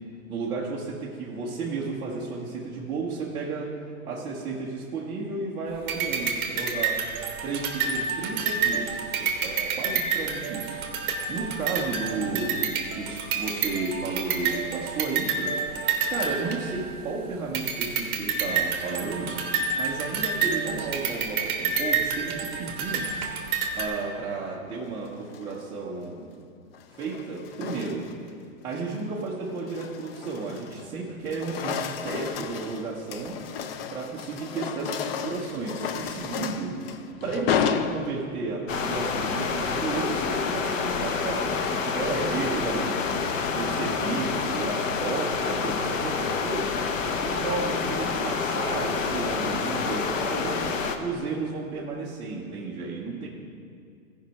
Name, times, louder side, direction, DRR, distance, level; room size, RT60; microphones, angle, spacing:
voice 1, 0.3-3.7 4.0-7.0 7.4-19.4 19.8-23.1 23.7-26.3 27.0-28.1 28.6-33.4 33.9-36.8 37.2-43.0 43.5-46.8 47.2-53.3, right 4 dB, 10° right, -6 dB, 0.5 m, -33 dB
sound 1, 5.9-17.1 17.5-23.9, right 5 dB, 25° right, 1.3 m, -29 dB
sound 2, 25.1-25.6 26.7-28.3 28.7-29.0 29.5-30.9 31.2-38.5, left 7 dB, 45° left, 0.5 m, -32 dB
sound 3, 38.7-51.0, left 5 dB, 65° left, 1.0 m, -28 dB
14.5 x 5.2 x 5.6 m, 2.3 s
hypercardioid pair, 140°, 42 cm